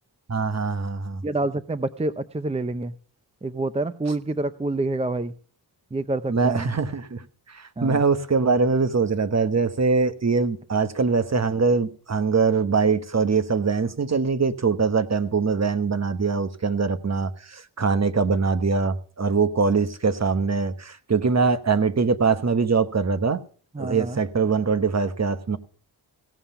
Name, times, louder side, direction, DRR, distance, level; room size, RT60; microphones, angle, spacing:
voice 1, 0.3-1.2 6.3-23.4 23.8-25.6, right 4 dB, 40° right, 1.1 m, -23 dB
voice 2, 1.2-2.9 3.4-5.3 5.9-6.7 7.8-8.0 23.7-24.2, right 2 dB, 15° right, 0.6 m, -27 dB
17.0 x 5.7 x 6.9 m
cardioid pair, 60°, 41 cm